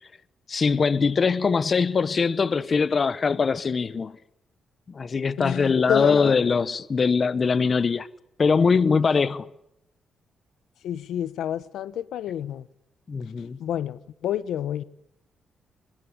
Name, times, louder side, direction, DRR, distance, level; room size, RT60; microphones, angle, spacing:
voice 1, 0.5-4.1 4.9-8.1 8.4-9.5 13.1-13.6, left 5 dB, 35° left, 0.9 m, -22 dB
voice 2, 5.4-6.3 10.8-12.7 13.6-14.8, left 11 dB, 90° left, 1.1 m, -29 dB
24.0 x 21.5 x 9.7 m
cardioid pair, 140°, 0 cm